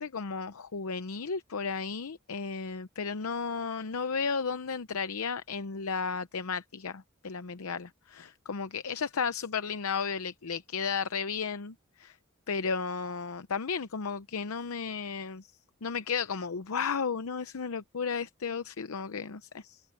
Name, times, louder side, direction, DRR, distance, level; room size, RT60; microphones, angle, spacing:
voice 1, 0.0-12.2 12.5-15.5 15.8-19.8, left 5 dB, 85° left, 0.7 m, -34 dB
head